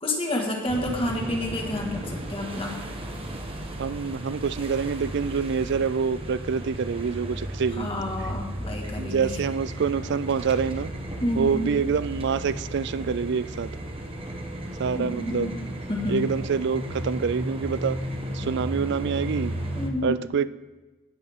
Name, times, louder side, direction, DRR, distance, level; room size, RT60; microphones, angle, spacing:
voice 1, 0.0-2.8 7.7-9.4 11.2-11.7 14.9-15.6 15.9-16.2 19.7-20.2, left 1 dB, 25° left, 0 dB, 1.8 m, -29 dB
sound 1, 0.7-19.9, right 1 dB, 25° right, 1.3 m, -34 dB
voice 2, 3.8-7.9 9.0-10.9 11.4-13.7 14.8-15.5 16.1-18.0 18.3-19.5 20.0-20.5, right 6 dB, 55° right, 16 dB, 0.4 m, -26 dB
17.5 x 7.8 x 3.7 m, 1.2 s
head